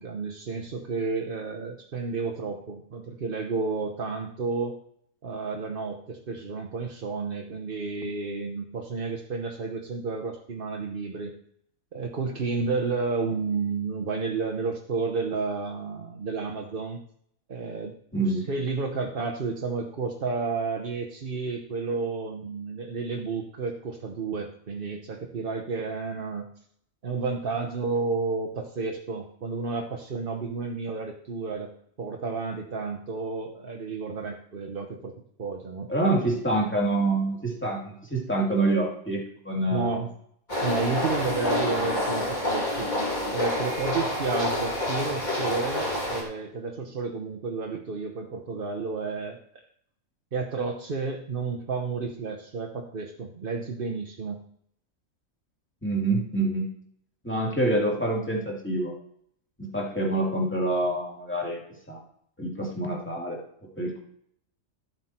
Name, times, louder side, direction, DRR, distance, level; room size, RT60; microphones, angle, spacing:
voice 1, 0.0-4.8 5.2-11.3 11.9-17.0 17.5-26.5 27.0-31.7 32.0-35.9 39.7-40.1 40.6-42.9 43.3-49.4 50.3-54.4, right 4 dB, 45° right, 2 dB, 1.1 m, -31 dB
voice 2, 18.1-18.5 35.9-39.9 55.8-56.7 57.2-58.9 59.6-61.6 61.9-62.0 62.4-63.4 63.8-64.0, right 2 dB, 10° left, -2 dB, 2.5 m, -26 dB
sound 1, 40.5-46.2, left 1 dB, 30° left, 3.2 m, -28 dB
13.0 x 7.6 x 4.5 m, 0.68 s
omnidirectional pair, 1.5 m